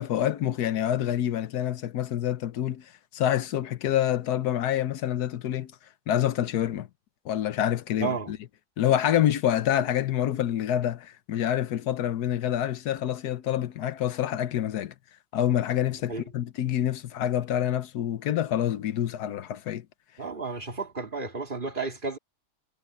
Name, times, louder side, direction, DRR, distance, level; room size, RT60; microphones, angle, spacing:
voice 1, 0.0-5.7 6.1-6.9 7.2-8.4 8.8-14.9 15.3-19.8, left 11 dB, 75° left, 1.4 m, -27 dB
voice 2, 8.0-8.3 16.1-16.2 20.2-22.2, right 4 dB, 30° right, 2.7 m, -32 dB
omnidirectional pair, 1.7 m